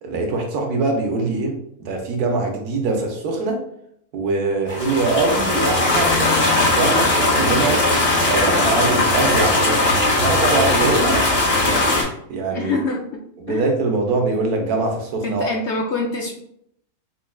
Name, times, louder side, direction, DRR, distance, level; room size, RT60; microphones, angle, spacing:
voice 1, 0.0-3.6 4.1-8.0 8.3-9.8 10.1-11.8 12.3-12.7 13.4-15.5, right 3 dB, 85° right, 2 dB, 1.3 m, -23 dB
sound 1, 4.7-12.0, left 2 dB, 45° left, 1.2 m, -18 dB
voice 2, 12.5-13.0 13.5-13.7 15.2-16.3, left 3 dB, 65° left, 1 dB, 0.7 m, -25 dB
5.6 x 2.3 x 2.3 m, 0.71 s
omnidirectional pair, 1.6 m